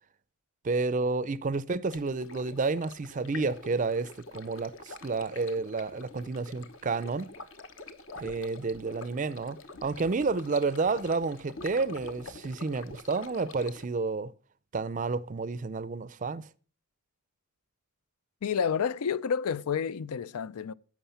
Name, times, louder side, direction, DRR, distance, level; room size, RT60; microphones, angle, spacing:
voice 1, 0.6-7.3 8.2-14.3 14.7-16.4, right 4 dB, 35° right, 0.4 m, -30 dB
Stream, 1.9-13.9, left 3 dB, 60° left, 1.1 m, -46 dB
voice 2, 18.4-20.7, left 7 dB, 85° left, 0.4 m, -29 dB
11.0 x 7.6 x 5.7 m
head